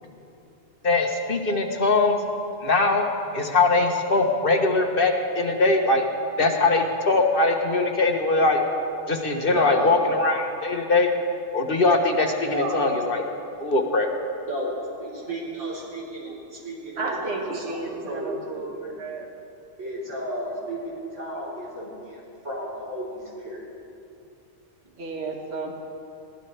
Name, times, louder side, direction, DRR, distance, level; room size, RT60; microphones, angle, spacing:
voice 1, 0.8-2.2 2.6-3.1 3.3-6.1 6.4-8.6 9.1-11.1 11.5-13.2 13.6-14.1, left 3 dB, 50° left, 3 dB, 1.3 m, -21 dB
voice 2, 9.5-10.0 12.4-13.0 14.5-14.7 15.0-19.0 19.8-23.6, right 1 dB, 85° right, -7 dB, 4.2 m, -33 dB
voice 3, 17.0-19.3 24.9-25.8, right 3 dB, 60° right, 1 dB, 1.7 m, -32 dB
22.0 x 16.0 x 3.3 m, 2.7 s
omnidirectional pair, 1.2 m